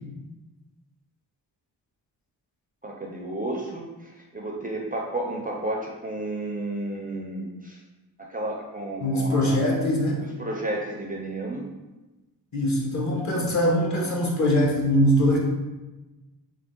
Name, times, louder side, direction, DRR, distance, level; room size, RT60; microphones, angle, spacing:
voice 1, 2.8-7.8 8.2-9.5 10.2-11.7, right 1 dB, 20° right, -1 dB, 0.4 m, -32 dB
voice 2, 9.0-10.2 12.5-15.4, equal, 40° left, -3 dB, 1.0 m, -22 dB
3.5 x 2.1 x 3.7 m, 1.1 s
cardioid pair, 70°, 41 cm